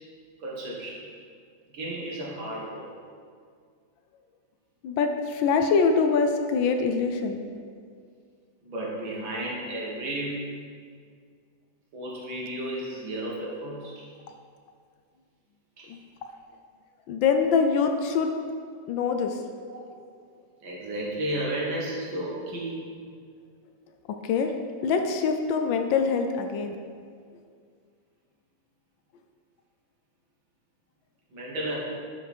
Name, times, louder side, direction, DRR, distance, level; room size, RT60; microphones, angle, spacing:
voice 1, 0.4-1.0 1.7-2.9 8.6-10.4 11.9-14.1 15.8-15.9 19.7-19.8 20.6-22.8 31.3-31.8, right 1 dB, 75° right, -4 dB, 2.5 m, -33 dB
voice 2, 4.8-7.4 15.9-16.0 17.1-18.3 18.9-19.4 24.2-24.5 24.8-26.8, left 5 dB, 80° left, 5 dB, 1.4 m, -24 dB
10.5 x 5.1 x 4.4 m, 2.1 s
omnidirectional pair, 2.1 m